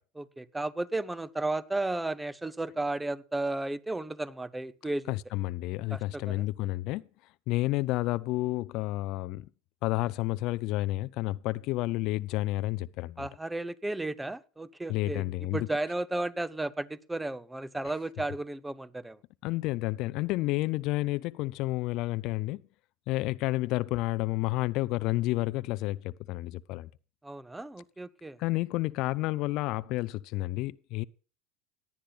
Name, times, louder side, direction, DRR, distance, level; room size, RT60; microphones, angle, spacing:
voice 1, 0.2-5.1 5.9-6.4 13.2-15.2 15.5-19.2 27.2-28.4, right 2 dB, 10° right, 0.7 m, -34 dB
voice 2, 5.1-7.1 7.5-9.5 9.8-13.3 14.9-15.7 19.4-22.6 23.1-26.9 28.4-31.0, left 19 dB, 55° left, 0.4 m, -30 dB
17.5 x 10.0 x 2.4 m
hypercardioid pair, 90°, 0 cm